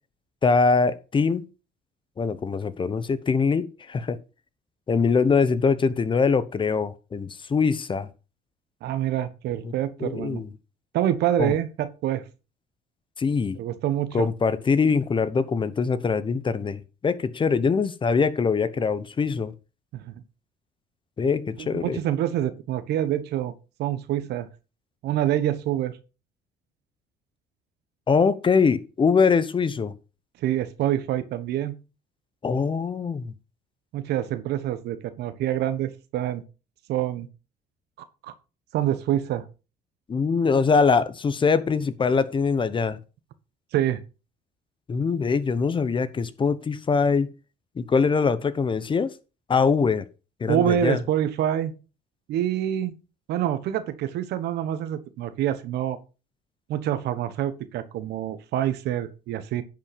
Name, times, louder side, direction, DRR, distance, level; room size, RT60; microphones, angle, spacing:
voice 1, 0.4-1.5 2.2-4.2 4.9-8.1 9.6-9.7 10.0-10.5 11.4-11.5 13.2-13.6 14.1-19.5 21.2-22.0 28.1-29.9 32.4-33.3 40.1-43.0 44.9-47.3 47.8-49.1 49.5-50.1 50.4-51.0, left 5 dB, 30° left, 0.9 m, -23 dB
voice 2, 8.8-10.4 10.9-12.2 13.5-14.3 19.9-20.2 21.6-23.5 23.8-24.5 25.0-25.9 30.4-31.8 33.9-36.4 36.9-37.3 38.2-38.3 38.7-39.4 43.7-44.0 50.5-51.7 52.3-52.9 53.3-56.0 56.7-59.6, right 11 dB, 80° right, 1.2 m, -26 dB
10.5 x 5.5 x 5.2 m
cardioid pair, 110°, 17 cm